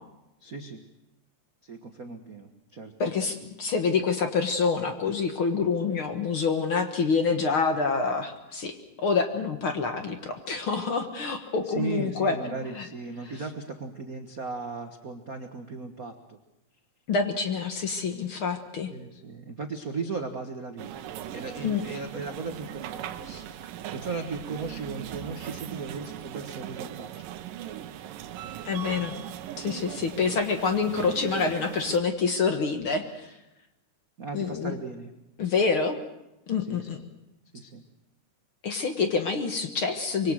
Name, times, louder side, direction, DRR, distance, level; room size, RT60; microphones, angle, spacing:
voice 1, 0.4-0.8 1.6-2.9 11.6-16.4 18.9-21.0 21.3-27.3 34.2-35.1 36.7-37.0 37.5-37.8, right 4 dB, 50° right, 5 dB, 1.0 m, -37 dB
voice 2, 3.0-12.9 17.1-18.9 21.6-21.8 23.3-23.4 28.6-29.2 29.6-33.3 34.3-34.8 35.4-36.0 36.5-37.0 38.6-40.3, left 5 dB, 50° left, 6 dB, 1.9 m, -27 dB
sound 1, 20.8-32.0, right 11 dB, 85° right, 2.7 m, -39 dB
25.5 x 23.0 x 6.5 m, 0.94 s
omnidirectional pair, 3.7 m